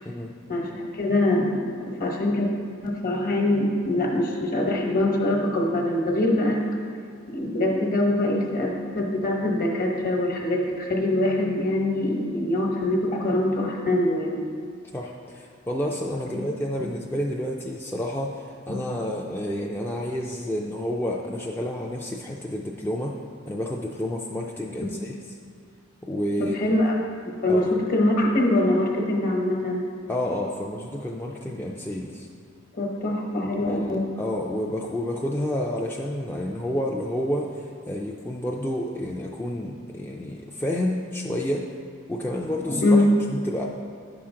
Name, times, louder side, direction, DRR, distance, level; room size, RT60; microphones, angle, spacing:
voice 1, 0.5-1.6 2.0-2.5 2.8-6.7 7.3-14.5 16.3-16.4 18.7-18.8 25.0-25.1 26.4-26.9 27.2-29.8 32.7-34.1 42.7-43.1, left 1 dB, 45° left, 0 dB, 1.1 m, -23 dB
voice 2, 14.9-23.2 23.5-25.1 26.0-26.8 27.5-27.7 30.1-32.3 33.6-41.7 42.1-43.7, left 1 dB, 10° left, -2 dB, 0.3 m, -30 dB
9.5 x 5.8 x 3.7 m, 2.2 s
head